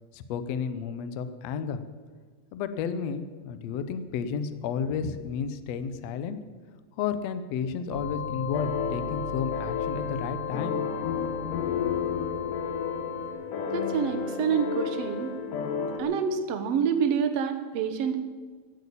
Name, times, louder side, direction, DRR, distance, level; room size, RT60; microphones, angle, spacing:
voice 1, 0.1-1.8 2.5-6.4 7.0-10.8, left 6 dB, 85° left, 11 dB, 1.4 m, -32 dB
sound 1, 7.9-13.3, left 6 dB, 30° right, 1.2 m, -35 dB
sound 2, 8.5-16.0, left 6 dB, 65° left, 2.7 m, -32 dB
voice 2, 13.7-15.4 16.0-18.2, right 7 dB, 75° right, 9 dB, 1.4 m, -27 dB
16.0 x 8.3 x 8.5 m, 1.5 s
omnidirectional pair, 4.3 m